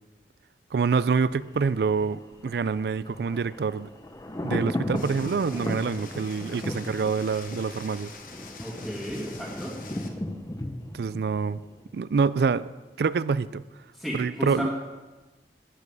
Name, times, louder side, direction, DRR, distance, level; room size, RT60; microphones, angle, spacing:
voice 1, 0.7-3.9 4.4-8.1 10.9-11.6 11.9-12.7 13.0-13.6 14.1-14.7, right 5 dB, 65° right, 17 dB, 0.3 m, -26 dB
Thunder, 1.4-12.3 12.6-12.7, left 1 dB, 20° left, 0.7 m, -36 dB
sound 1, 4.9-10.1, left 5 dB, 50° left, 1.0 m, -46 dB
voice 2, 8.6-9.7 14.0-14.7, equal, ahead, -3 dB, 1.6 m, -33 dB
10.5 x 10.0 x 4.7 m, 1.2 s
head